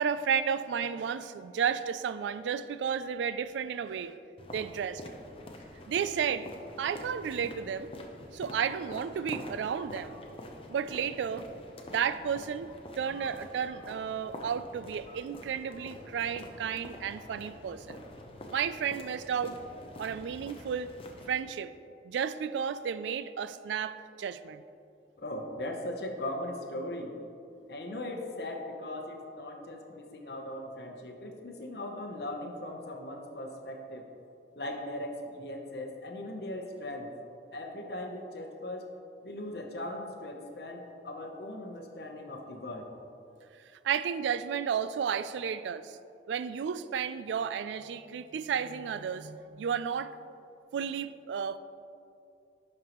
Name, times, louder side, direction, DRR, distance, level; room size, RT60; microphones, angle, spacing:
voice 1, 0.0-4.2 4.5-5.0 5.9-6.5 6.8-7.9 8.3-10.2 10.7-11.5 11.9-18.0 18.5-19.6 20.0-20.9 21.3-21.7 22.0-24.6 43.8-46.0 46.3-50.1 50.7-51.6, right 7 dB, 85° right, 14 dB, 0.3 m, -32 dB
sound 1, 4.4-21.4, left 1 dB, 30° left, 0.6 m, -46 dB
voice 2, 25.2-27.1 27.7-34.0 34.5-37.1 37.5-38.9 39.2-42.9, left 1 dB, 65° left, 3 dB, 0.9 m, -39 dB
11.5 x 5.4 x 3.0 m, 2.6 s
head